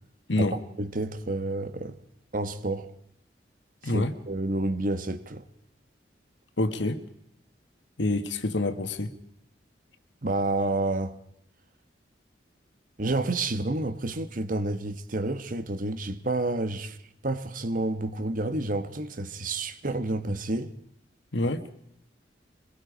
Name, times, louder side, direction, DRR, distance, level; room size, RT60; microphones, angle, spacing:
voice 1, 0.8-2.0 2.3-2.9 3.8-5.4 10.2-11.2 13.0-17.0 17.2-20.7, right 2 dB, 50° right, 1.2 m, -29 dB
voice 2, 3.8-4.1 6.6-7.0 8.0-9.1 21.3-21.7, left 2 dB, 85° left, 1.6 m, -27 dB
24.0 x 21.0 x 5.1 m
head